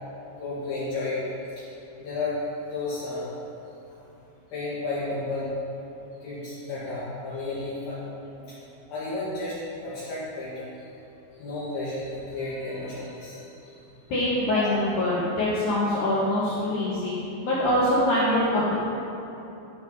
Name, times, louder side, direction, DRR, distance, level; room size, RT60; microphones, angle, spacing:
voice 1, 0.3-1.2 2.0-2.4 2.6-3.3 3.9-4.0 4.5-5.5 6.2-8.0 8.4-9.6 9.8-10.9 11.3-13.9 14.5-14.8, left 3 dB, 60° left, -11 dB, 3.2 m, -33 dB
voice 2, 14.1-17.1 17.4-18.8, left 1 dB, 75° left, -8 dB, 1.8 m, -24 dB
13.5 x 4.7 x 5.3 m, 3.0 s
omnidirectional pair, 5.4 m